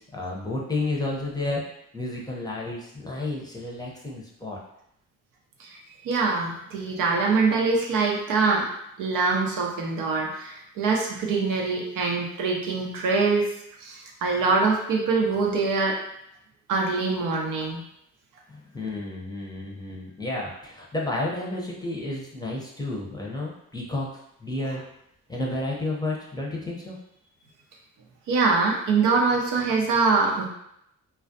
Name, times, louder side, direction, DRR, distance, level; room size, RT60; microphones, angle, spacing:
voice 1, 0.0-1.6 1.9-4.6 18.5-24.1 24.4-24.8 25.3-27.0, left 2 dB, 10° left, -3 dB, 0.6 m, -31 dB
voice 2, 6.0-8.7 9.0-13.5 13.8-15.9 16.7-17.8 28.3-30.5, right 4 dB, 70° right, -1 dB, 0.6 m, -24 dB
2.3 x 2.1 x 2.6 m, 0.77 s
supercardioid pair, 60°, 33 cm